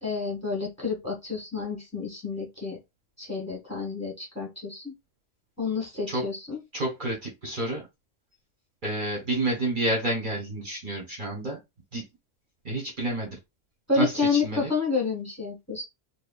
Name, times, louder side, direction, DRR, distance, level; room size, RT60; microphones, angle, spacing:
voice 1, 0.0-2.8 3.2-4.9 5.6-6.6 13.9-15.8, left 4 dB, 10° left, -2 dB, 1.6 m, -29 dB
voice 2, 6.7-7.9 8.8-11.6 11.9-12.0 12.6-13.4 14.0-14.7, right 1 dB, 40° right, -2 dB, 1.5 m, -29 dB
4.6 x 2.3 x 2.4 m, 0.22 s
omnidirectional pair, 1.3 m